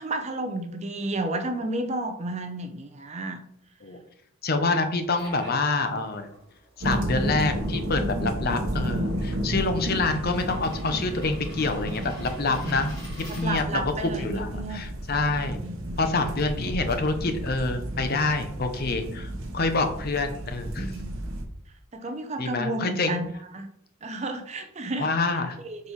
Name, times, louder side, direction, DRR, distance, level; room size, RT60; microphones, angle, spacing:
voice 1, 0.0-3.4 13.3-14.8 15.3-15.8 20.4-21.2 21.9-23.7 24.0-25.1 25.6-25.9, right 2 dB, 30° right, 6 dB, 0.6 m, -32 dB
voice 2, 4.4-6.3 6.8-12.9 13.4-15.6 16.0-20.9 22.4-23.2 25.0-25.6, left 3 dB, 45° left, 8 dB, 0.6 m, -27 dB
sound 1, 4.9-13.9, equal, 20° left, 2.5 m, -49 dB
sound 2, 6.8-21.4, equal, 70° right, 1.0 m, -32 dB
5.2 x 4.3 x 4.6 m, 0.73 s
head